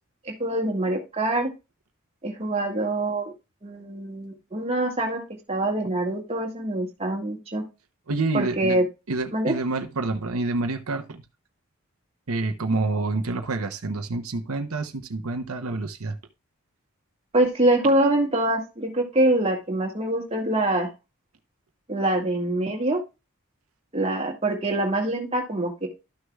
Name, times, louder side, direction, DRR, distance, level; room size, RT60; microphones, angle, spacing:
voice 1, 0.3-1.5 2.2-3.3 3.6-5.2 5.5-7.6 8.3-8.8 9.3-9.5 17.3-20.9 21.9-23.0 23.9-25.9, right 1 dB, 25° right, 0 dB, 1.8 m, -24 dB
voice 2, 8.1-8.8 9.1-11.2 12.3-16.2, right 3 dB, 80° right, 6 dB, 0.8 m, -28 dB
12.5 x 6.3 x 2.3 m, 0.26 s
head